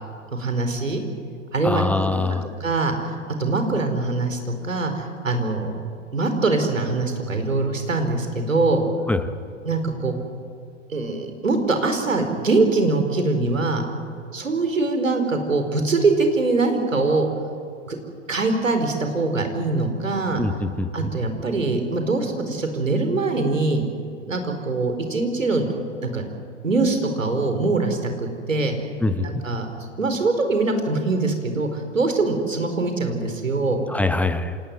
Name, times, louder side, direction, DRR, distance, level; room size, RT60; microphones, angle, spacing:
voice 1, 0.3-1.0 1.5-2.2 2.6-2.9 3.4-5.7 6.1-8.8 9.6-10.1 10.9-13.8 14.3-17.3 17.9-18.0 18.3-20.4 20.9-23.8 24.3-25.7 26.0-26.2 26.6-28.7 29.2-29.7 30.0-33.8, right 3 dB, 80° right, 6 dB, 4.6 m, -23 dB
voice 2, 1.6-2.5 9.1-9.3 20.4-21.1 29.0-29.3 33.9-34.6, left 2 dB, 5° left, 11 dB, 0.9 m, -24 dB
27.0 x 18.5 x 9.7 m, 2.3 s
figure-of-eight pair, 105°, 38 cm